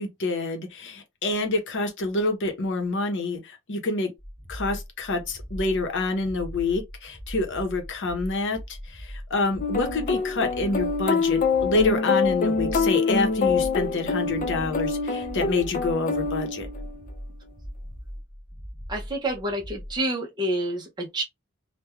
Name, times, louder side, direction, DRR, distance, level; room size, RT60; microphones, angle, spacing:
voice 1, 0.0-4.1 4.5-8.6 8.9-16.7, left 3 dB, 60° left, 0.8 m, -27 dB
sound 1, 4.2-20.0, equal, 15° left, 0.7 m, -40 dB
sound 2, 9.6-17.1, left 4 dB, 40° left, 0.3 m, -25 dB
voice 2, 18.9-21.2, right 1 dB, 20° right, 0.6 m, -28 dB
3.1 x 2.2 x 2.3 m
head